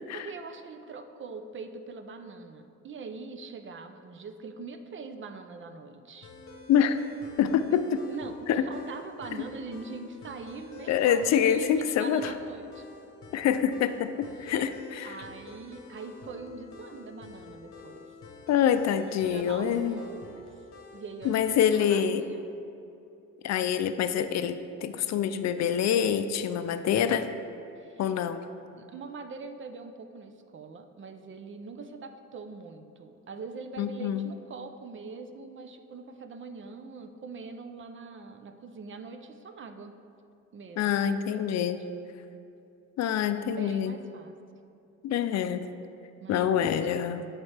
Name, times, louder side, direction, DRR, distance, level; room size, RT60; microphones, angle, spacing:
voice 1, 0.1-6.3 7.7-12.8 14.4-14.5 15.0-18.2 19.3-20.7 20.9-21.5 21.8-22.4 27.8-28.0 28.8-39.9 40.5-40.9 41.3-41.9 43.6-44.3 46.2-46.5, right 4 dB, 40° right, 8 dB, 0.5 m, -43 dB
sound 1, 6.2-22.3, left 3 dB, 45° left, 1.0 m, -48 dB
voice 2, 6.7-7.0 7.4-8.0 8.5-8.6 10.9-12.3 13.3-15.2 18.5-19.9 21.2-22.2 23.4-27.3 28.0-28.5 33.8-34.3 40.8-41.8 43.0-43.9 45.0-45.7 46.3-47.3, left 9 dB, 60° left, 10 dB, 0.4 m, -26 dB
11.5 x 4.4 x 3.3 m, 2.7 s
cardioid pair, 90°, 30 cm